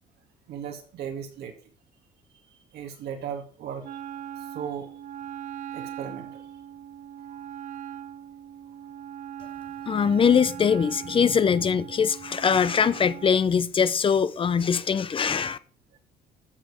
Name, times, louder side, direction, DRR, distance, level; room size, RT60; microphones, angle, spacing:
voice 1, 0.5-1.5 2.5-4.0 4.4-4.9 5.7-6.4 15.9-16.0, right 8 dB, 75° right, 2.3 m, -37 dB
Wind instrument woodwind instrument, 3.8-13.4, right 10 dB, 50° right, 0.5 m, -40 dB
voice 2, 9.9-15.6, left 6 dB, 30° left, 0.6 m, -22 dB
14.0 x 5.2 x 4.9 m
cardioid pair, 110°, 17 cm